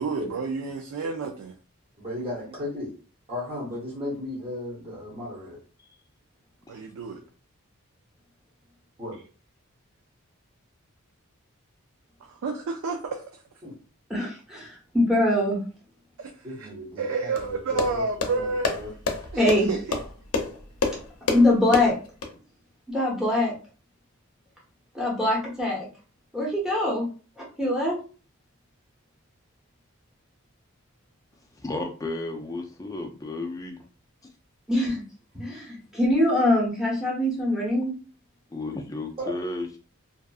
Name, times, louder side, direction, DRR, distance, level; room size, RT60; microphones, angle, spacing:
voice 1, 0.0-1.5 6.7-7.2 12.2-13.2 16.2-16.7 17.0-18.8 19.3-20.0, right 4 dB, 75° right, 4 dB, 0.4 m, -30 dB
voice 2, 2.0-2.9 3.3-5.6 9.0-9.2 13.6-13.7 16.4-18.9 39.2-39.3, left 1 dB, 25° right, -6 dB, 1.0 m, -35 dB
voice 3, 14.1-15.6 19.3-19.7 21.3-21.9 22.9-23.5 24.9-25.9 26.3-27.1 27.4-27.9 34.7-35.0 35.4-37.9, left 1 dB, 5° right, -5 dB, 0.9 m, -23 dB
sound 1, 17.4-22.3, left 4 dB, 90° left, 0.6 m, -30 dB
voice 4, 31.5-33.8 38.5-39.8, left 2 dB, 15° left, 3 dB, 0.3 m, -33 dB
2.6 x 2.4 x 2.3 m, 0.37 s
head